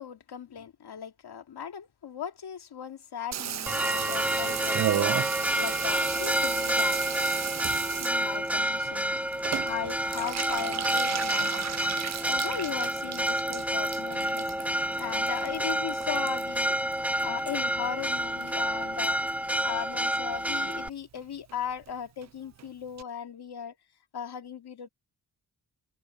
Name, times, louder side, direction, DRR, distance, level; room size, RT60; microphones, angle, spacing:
voice 1, 0.0-5.1 5.6-7.2 7.9-11.5 12.3-14.5 15.0-16.8 17.2-19.2 19.6-23.8 24.1-24.9, left 8 dB, 65° left, 2.3 m, -38 dB
Water tap faucet / Bathtub (filling or washing), 3.3-17.9 18.1-18.9 19.2-19.3 19.5-19.6 19.8-20.2 20.5-20.6 20.8-20.9 21.2-21.3 21.5-21.6 21.8-21.9 22.2-22.3 22.6-22.7 23.0-23.1, right 10 dB, 45° right, 0.4 m, -35 dB
Church bell, 3.7-20.9, right 1 dB, 5° right, 1.3 m, -29 dB
sound 1, 4.4-20.1, left 9 dB, 85° left, 6.0 m, -58 dB
cardioid pair, 95°, 41 cm